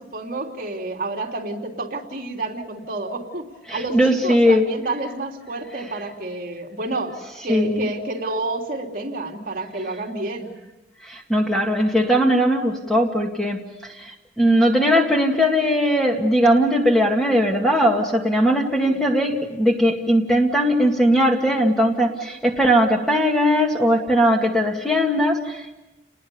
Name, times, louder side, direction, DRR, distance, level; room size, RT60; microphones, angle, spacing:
voice 1, 0.0-7.2 7.4-10.5 18.8-19.1, right 2 dB, 50° right, 0 dB, 3.1 m, -30 dB
voice 2, 3.7-4.7 7.5-7.9 11.0-25.8, equal, 5° left, 1 dB, 2.0 m, -19 dB
29.5 x 20.5 x 7.0 m, 1.0 s
head